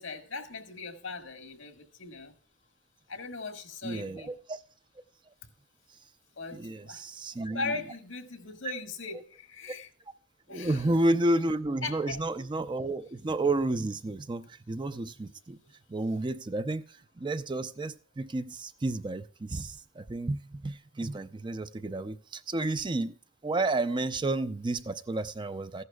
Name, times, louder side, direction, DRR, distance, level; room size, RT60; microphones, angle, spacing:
voice 1, 0.0-2.3 3.1-4.4 6.4-6.6 6.9-7.0 7.3-9.9 10.5-10.8 11.8-12.2, left 4 dB, 85° left, 1.6 m, -39 dB
voice 2, 3.8-4.6 6.5-7.7 10.5-15.6 15.9-16.8 17.2-23.1 23.4-25.8, right 2 dB, 25° right, 0.5 m, -31 dB
14.5 x 11.0 x 2.3 m
head